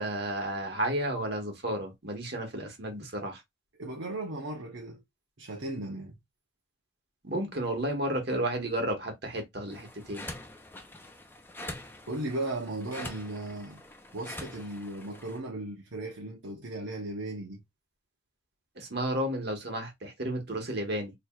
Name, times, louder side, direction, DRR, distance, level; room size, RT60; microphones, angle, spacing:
voice 1, 0.0-3.4 7.2-10.3 18.8-21.1, right 1 dB, 55° right, 1.3 m, -32 dB
voice 2, 3.8-5.0 5.4-6.1 12.1-13.8 14.1-17.6, right 2 dB, 75° right, 0.9 m, -36 dB
sound 1, 9.7-15.4, left 1 dB, 10° left, 0.5 m, -44 dB
4.4 x 3.2 x 2.3 m
head